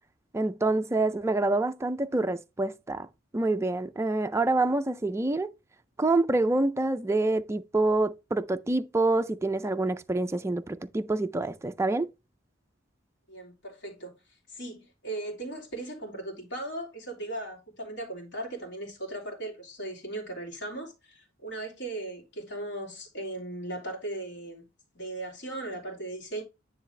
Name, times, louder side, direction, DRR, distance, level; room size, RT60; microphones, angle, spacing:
voice 1, 0.3-3.1 3.3-5.5 6.0-12.1, right 2 dB, 15° right, 0.4 m, -27 dB
voice 2, 13.3-14.1 14.5-24.6 24.9-26.4, right 2 dB, 65° left, 3.1 m, -37 dB
9.9 x 3.9 x 3.2 m
head